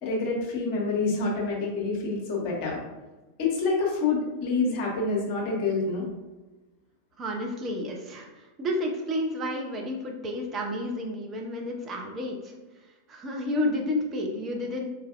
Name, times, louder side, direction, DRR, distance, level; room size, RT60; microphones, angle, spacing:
voice 1, 0.0-2.8 3.4-6.0, left 3 dB, 45° left, -2 dB, 1.0 m, -27 dB
voice 2, 7.2-12.5 13.1-14.9, left 1 dB, 25° right, 1 dB, 0.6 m, -31 dB
4.2 x 2.6 x 2.4 m, 1.1 s
figure-of-eight pair, 90°, 0 cm